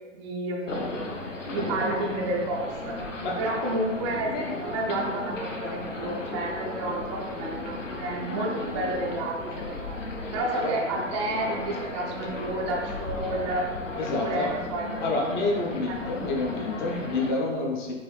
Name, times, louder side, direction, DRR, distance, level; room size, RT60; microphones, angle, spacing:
voice 1, 0.1-1.0 1.4-3.0 3.4-10.0 10.3-13.7 14.2-15.0 15.5-15.6 15.9-16.0, right 2 dB, 25° right, -2 dB, 0.4 m, -31 dB
sound 1, 0.7-17.3, left 2 dB, 80° left, 0.7 m, -35 dB
voice 2, 13.9-14.5 15.0-17.9, left 2 dB, 40° left, 0 dB, 0.8 m, -28 dB
5.3 x 2.6 x 3.2 m, 1.2 s
figure-of-eight pair, 110°, 38 cm